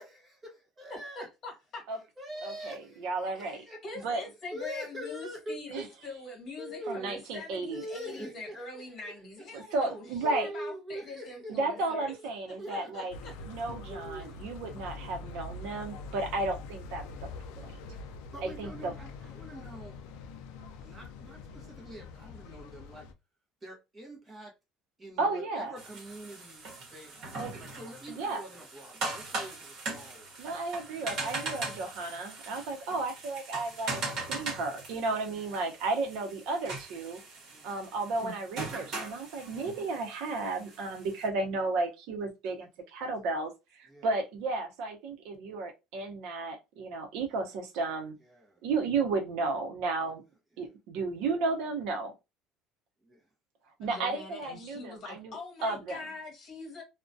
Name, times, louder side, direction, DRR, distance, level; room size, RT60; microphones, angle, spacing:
voice 1, 0.0-1.3 2.2-4.1 4.5-5.8 6.6-7.2 7.7-9.1 10.2-12.2 12.6-12.9 13.9-14.4 18.3-19.9 20.8-23.1 23.6-24.5 25.0-30.3 30.9-32.0 35.3-35.5 37.5-37.7 43.9-44.1 47.5-47.6 48.3-48.6 53.0-53.2, right 1 dB, 15° right, 0.7 m, -44 dB
voice 2, 0.9-1.8 3.2-12.1 12.5-13.3 38.2-38.3 53.8-56.8, left 3 dB, 35° left, 1.1 m, -43 dB
voice 3, 2.4-3.6 4.0-4.2 5.7-5.9 6.9-7.8 9.5-10.5 11.5-13.1 13.5-17.0 17.6-17.7 18.4-18.9 25.2-25.7 27.4-27.5 28.1-28.4 30.4-34.0 34.3-37.2 37.6-48.1 48.6-50.2 50.6-52.1 53.8-55.4 55.6-56.0, right 3 dB, 60° right, 0.7 m, -33 dB
sound 1, 13.1-23.1, left 3 dB, 90° left, 0.3 m, -44 dB
Cooking Scrambled Eggs, 25.8-41.3, right 3 dB, 45° right, 1.1 m, -40 dB
2.3 x 2.1 x 2.5 m
cardioid pair, 175°, 0 cm